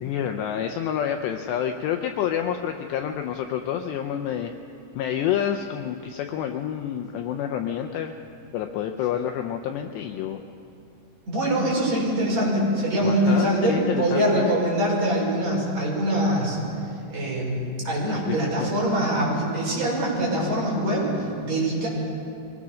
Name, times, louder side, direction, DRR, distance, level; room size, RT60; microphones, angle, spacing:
voice 1, 0.0-4.5 5.0-8.1 8.5-10.4 13.0-14.6 18.1-18.7, left 9 dB, 80° left, 5 dB, 2.6 m, -28 dB
voice 2, 11.3-16.6 17.1-21.9, right 1 dB, 35° right, -5 dB, 6.5 m, -23 dB
23.5 x 19.0 x 6.3 m, 2.5 s
omnidirectional pair, 5.5 m